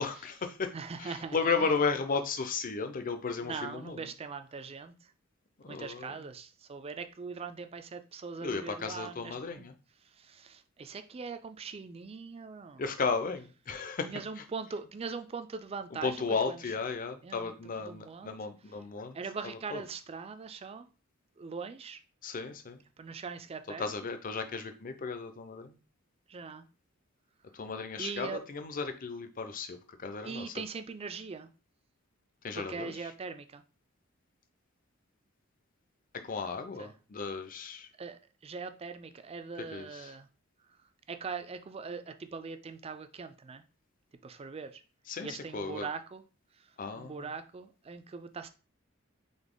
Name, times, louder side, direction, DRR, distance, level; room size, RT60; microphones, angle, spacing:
voice 1, 0.0-0.7 1.0-4.1 5.6-6.1 8.4-9.7 12.8-14.1 15.9-19.2 19.7-19.8 22.2-22.8 23.8-25.7 27.5-30.5 32.4-32.9 36.1-37.9 39.7-40.1 45.1-45.9 46.8-47.3, left 4 dB, 40° left, 0.6 m, -34 dB
voice 2, 0.7-1.7 3.4-5.1 5.7-9.7 10.2-12.8 14.0-16.6 17.2-17.5 17.8-18.4 19.1-20.9 21.4-22.0 23.0-23.9 26.3-26.6 28.0-28.4 30.2-31.5 32.5-33.6 36.8-36.9 38.0-40.3 41.1-43.6 44.2-44.8 45.2-46.2 46.9-48.5, right 5 dB, 30° right, 0.4 m, -41 dB
4.0 x 3.2 x 3.7 m
head